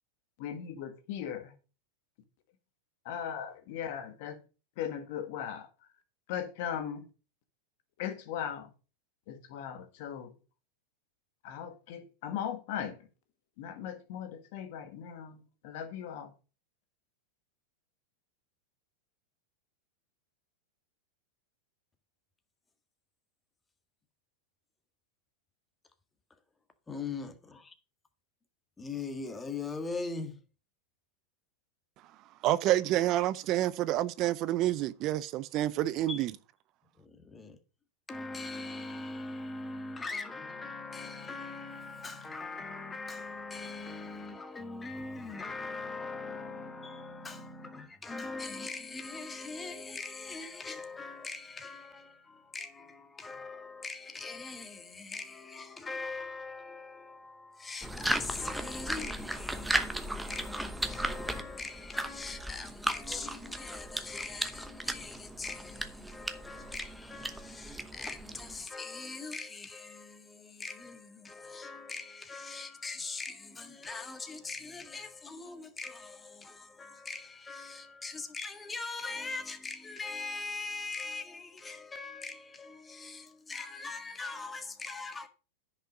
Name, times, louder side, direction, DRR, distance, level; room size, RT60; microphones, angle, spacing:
voice 1, 0.4-1.5 3.1-4.4 4.8-5.7 6.3-7.1 8.0-8.7 9.3-10.3 11.4-13.0 13.6-16.3, left 9 dB, 60° left, 1.7 m, -38 dB
voice 2, 26.9-27.7 28.8-30.4 36.1-36.2 37.0-37.6 38.1-85.3, left 3 dB, 15° left, 1.6 m, -41 dB
voice 3, 32.4-36.3, right 14 dB, 45° right, 0.6 m, -28 dB
sound 1, 57.8-68.7, right 1 dB, 5° right, 1.0 m, -36 dB
10.0 x 5.6 x 5.1 m
hypercardioid pair, 115°, 0 cm